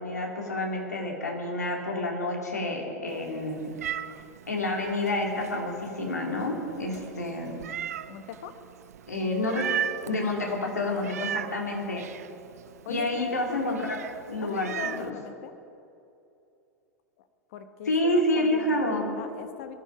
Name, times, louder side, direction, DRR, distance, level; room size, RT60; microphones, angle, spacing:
voice 1, 0.0-3.7 4.5-7.6 9.1-9.6 10.0-12.0 12.9-14.0 14.3-14.7 15.0-15.1 17.9-19.2, left 1 dB, 85° left, 0 dB, 2.8 m, -29 dB
Meow, 3.1-15.1, right 10 dB, 70° right, 0.5 m, -38 dB
voice 2, 8.1-8.5 10.9-11.6 12.8-13.2 13.5-13.6 14.4-15.5 17.5-19.7, left 8 dB, 55° left, 9 dB, 1.3 m, -41 dB
21.0 x 13.0 x 5.0 m, 2.6 s
figure-of-eight pair, 90°, 9 cm